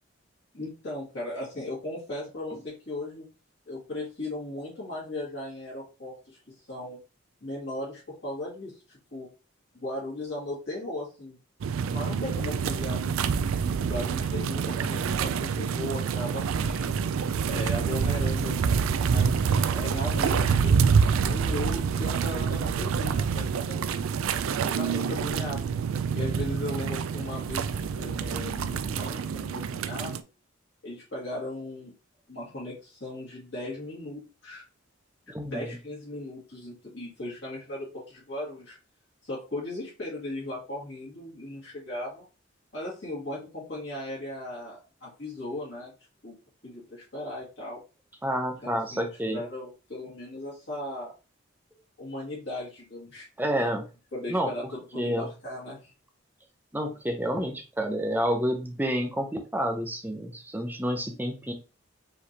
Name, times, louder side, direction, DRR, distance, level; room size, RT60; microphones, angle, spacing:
voice 1, 0.5-3.3 3.7-6.4 6.7-7.0 7.4-8.7 9.1-9.3 9.7-11.4 11.8-13.1 13.9-16.9 17.4-20.8 21.3-23.9 24.6-25.7 26.1-30.2 30.8-31.9 32.3-34.6 35.4-38.8 39.2-42.2 42.7-45.9 46.2-46.4 46.6-47.8 48.6-51.1 52.0-53.3 53.6-53.7 54.1-55.9, left 1 dB, 60° left, -7 dB, 2.1 m, -37 dB
sound 1, 11.6-30.2, right 6 dB, 90° right, 0.4 m, -27 dB
voice 2, 35.3-35.7 48.2-49.4 53.4-53.8 54.3-54.5 55.0-55.3 56.7-61.5, equal, 10° right, 4 dB, 0.6 m, -29 dB
5.0 x 3.2 x 2.8 m, 0.32 s
head